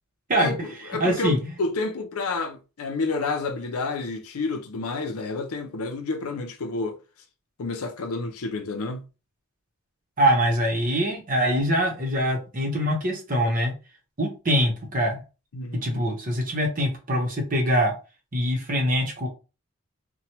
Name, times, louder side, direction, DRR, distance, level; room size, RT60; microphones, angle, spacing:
voice 1, 0.4-7.0 7.6-9.0 15.5-16.1, left 3 dB, 80° left, 0.5 m, -30 dB
voice 2, 1.0-1.4 10.2-13.7 14.2-15.2 15.7-17.9 18.3-19.3, equal, 35° right, 0.9 m, -23 dB
2.9 x 2.2 x 2.9 m
head